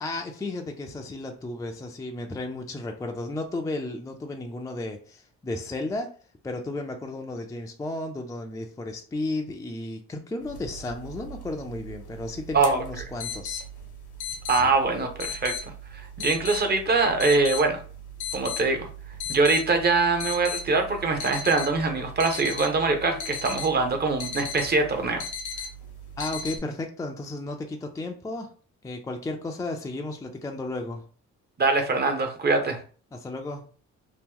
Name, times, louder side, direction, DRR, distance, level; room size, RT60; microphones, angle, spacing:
voice 1, 0.0-6.1 6.4-13.6 26.2-28.5 28.8-31.0 33.1-33.6, left 2 dB, 10° left, 3 dB, 0.4 m, -33 dB
sound 1, 10.5-26.6, left 4 dB, 85° left, 1.0 m, -37 dB
voice 2, 14.5-15.5 15.9-17.8 18.3-18.9 19.3-25.2 31.6-32.8, right 3 dB, 35° right, 5 dB, 0.8 m, -23 dB
3.0 x 2.1 x 3.6 m, 0.40 s
cardioid pair, 90°, 30 cm